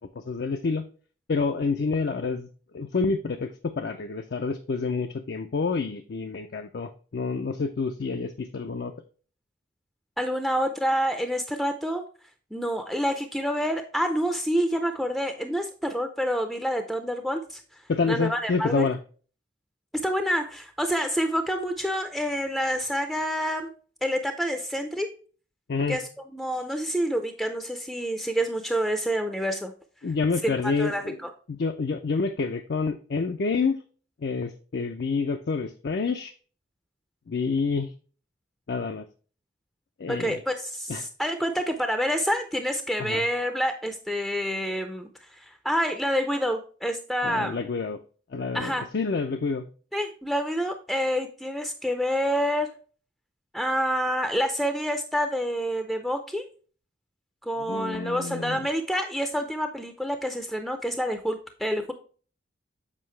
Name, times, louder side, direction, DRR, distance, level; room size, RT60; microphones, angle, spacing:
voice 1, 0.2-0.9 1.3-2.5 2.7-8.9 17.9-19.0 25.7-26.0 30.0-31.2 31.5-33.8 34.2-36.3 37.3-37.9 38.7-39.0 40.0-40.4 40.9-41.1 43.0-43.2 47.2-48.0 48.3-49.7 57.6-58.6, left 4 dB, 55° left, 7 dB, 0.4 m, -28 dB
voice 2, 10.2-12.0 12.5-17.6 18.1-18.9 19.9-23.7 24.0-25.1 25.9-26.0 26.3-29.7 30.4-31.3 40.1-45.1 45.4-47.6 48.5-48.8 49.9-52.7 53.5-56.4 57.4-61.9, equal, ahead, 7 dB, 0.5 m, -27 dB
7.5 x 5.0 x 3.2 m, 0.40 s
head